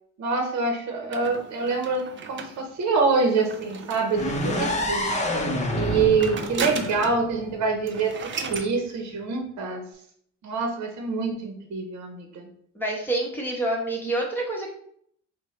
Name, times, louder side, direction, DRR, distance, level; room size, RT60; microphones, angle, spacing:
voice 1, 0.2-2.0 2.3-5.1 5.7-9.8 10.4-12.5, right 4 dB, 60° right, 3 dB, 0.9 m, -25 dB
sound 1, 1.1-4.8 5.7-7.3 7.6-7.7 7.9-8.7, right 5 dB, 40° right, 0.5 m, -36 dB
sound 2, 4.1-8.0, left 1 dB, 25° left, 0.7 m, -28 dB
voice 2, 12.7-14.7, right 1 dB, 5° left, -1 dB, 1.2 m, -27 dB
5.2 x 2.2 x 3.1 m, 0.66 s
cardioid pair, 90°, 30 cm